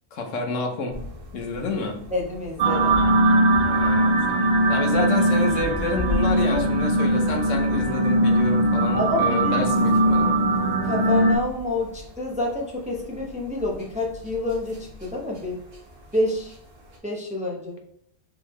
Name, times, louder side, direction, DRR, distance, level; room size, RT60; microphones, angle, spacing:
voice 1, 0.1-1.0 1.3-2.0 3.7-10.4, left 3 dB, 80° left, 3 dB, 1.2 m, -29 dB
sound 1, 0.9-17.0, left 2 dB, 80° right, 1.6 m, -39 dB
voice 2, 2.1-3.0 6.5-6.6 8.9-9.7 10.8-15.6 16.1-16.6 17.0-17.8, left 2 dB, 5° right, -2 dB, 0.6 m, -28 dB
sound 2, 2.6-11.4, right 1 dB, 55° right, 0.9 m, -20 dB
4.6 x 3.7 x 3.1 m, 0.71 s
omnidirectional pair, 1.3 m